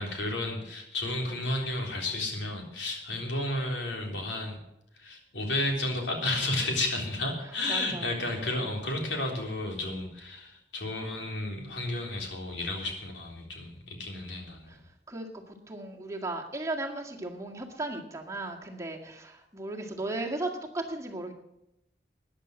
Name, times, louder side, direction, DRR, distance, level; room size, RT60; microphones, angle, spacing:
voice 1, 0.0-4.6 4.9-14.7, left 2 dB, 85° left, 1 dB, 3.6 m, -32 dB
voice 2, 7.7-8.2 14.7-14.8 15.1-21.3, right 2 dB, 20° right, 0 dB, 1.9 m, -36 dB
13.5 x 10.0 x 6.4 m, 0.84 s
head